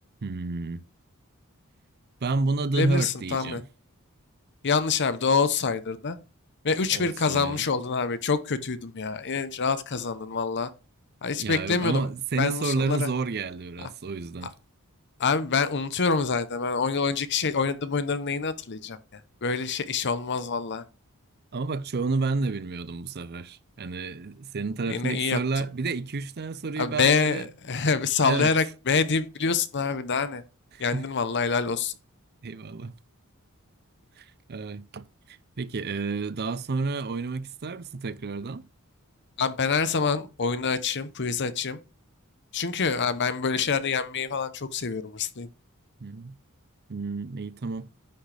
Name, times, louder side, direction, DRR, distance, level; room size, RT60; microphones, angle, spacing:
voice 1, 0.2-0.8 2.2-3.7 6.9-7.7 11.4-14.5 21.5-27.5 28.2-28.5 30.7-31.1 32.4-32.9 34.2-38.7 46.0-46.4 46.9-47.9, right 3 dB, 50° right, 0.6 m, -30 dB
voice 2, 2.7-3.6 4.6-6.2 6.6-10.7 11.2-12.1 12.4-13.1 15.2-20.8 24.9-25.4 26.8-30.4 30.8-31.9 39.4-41.8 42.5-45.5, left 5 dB, 55° left, 0.9 m, -26 dB
9.9 x 6.3 x 3.4 m
head